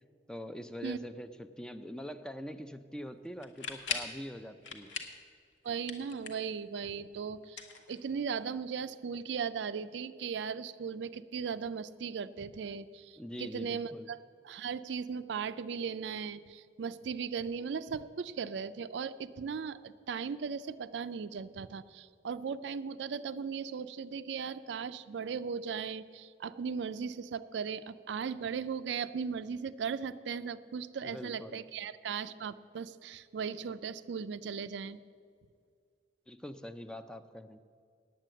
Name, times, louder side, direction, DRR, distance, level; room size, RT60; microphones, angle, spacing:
voice 1, 0.3-1.3 1.6-4.9 13.2-14.1 31.0-31.6 36.3-37.6, equal, 5° left, 10 dB, 0.4 m, -43 dB
sound 1, 3.4-4.2 4.6-5.2 5.5-6.6 7.4-8.4, left 5 dB, 75° left, 1.2 m, -39 dB
voice 2, 5.6-7.6 7.9-14.2 14.4-35.0, right 6 dB, 70° right, 14 dB, 0.4 m, -37 dB
9.1 x 9.0 x 7.6 m, 2.2 s
head